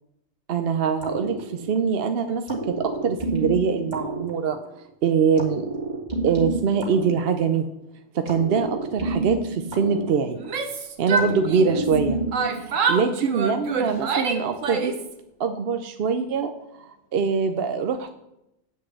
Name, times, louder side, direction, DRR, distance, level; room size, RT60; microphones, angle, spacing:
voice 1, 0.5-4.6 5.0-5.6 6.2-7.7 8.1-10.4 11.0-12.2 12.6-14.9 15.4-16.5 16.8-18.1, right 6 dB, 55° right, 7 dB, 0.8 m, -23 dB
sound 1, 1.0-2.0 2.5-4.9 5.4-7.8 8.3-10.7 11.2-12.6, right 2 dB, 35° right, 1.9 m, -29 dB
Yell, 10.4-12.0 12.3-15.1, right 4 dB, 85° right, 1.4 m, -26 dB
7.7 x 6.3 x 7.9 m, 0.85 s
omnidirectional pair, 1.3 m